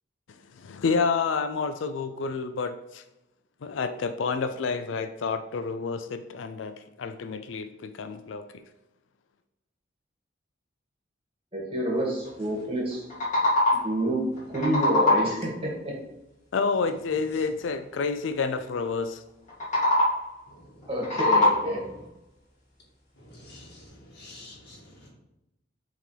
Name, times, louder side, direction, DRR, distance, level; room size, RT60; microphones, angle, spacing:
voice 1, 0.5-3.0 3.6-8.4 16.5-19.2, left 4 dB, 90° left, 10 dB, 0.4 m, -29 dB
voice 2, 11.5-13.1 13.8-14.2 14.5-16.0 20.9-21.8, right 1 dB, 30° right, -3 dB, 2.0 m, -28 dB
sound 1, 12.9-14.0 14.4-15.5 19.5-20.4 20.8-21.9, left 2 dB, 40° left, 2.1 m, -23 dB
voice 3, 23.2-25.1, left 1 dB, 60° left, -3 dB, 2.1 m, -48 dB
9.1 x 3.7 x 3.3 m, 0.90 s
head